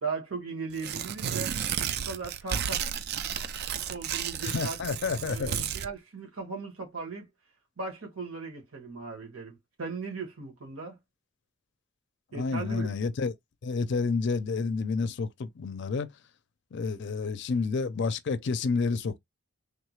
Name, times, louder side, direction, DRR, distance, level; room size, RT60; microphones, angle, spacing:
voice 1, 0.0-1.6 2.0-2.8 3.9-4.8 5.2-7.3 7.8-11.0 12.3-12.9, right 4 dB, 85° right, 1.4 m, -37 dB
Tearing, 0.7-5.9, right 9 dB, 50° right, 0.3 m, -32 dB
voice 2, 4.4-5.7 12.3-13.3 13.6-16.1 16.7-19.2, left 4 dB, 55° left, 0.4 m, -29 dB
3.5 x 2.3 x 3.1 m
head